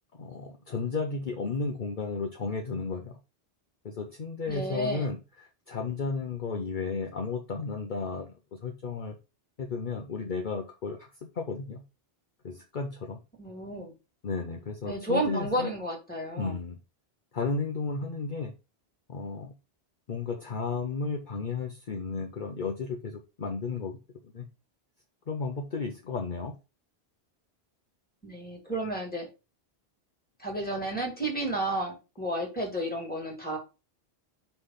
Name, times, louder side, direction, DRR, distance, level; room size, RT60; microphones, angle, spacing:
voice 1, 0.1-3.2 3.8-9.1 9.6-11.8 12.4-13.2 14.2-15.7 16.4-16.8 17.3-18.5 19.1-19.5 20.1-24.0 24.3-24.4 25.3-26.5, left 4 dB, 50° left, 2 dB, 0.9 m, -33 dB
voice 2, 4.5-5.1 13.4-13.9 14.8-16.5 28.2-29.3 30.4-33.6, right 1 dB, 10° left, 0 dB, 2.3 m, -31 dB
5.9 x 3.4 x 5.7 m, 0.28 s
omnidirectional pair, 1.1 m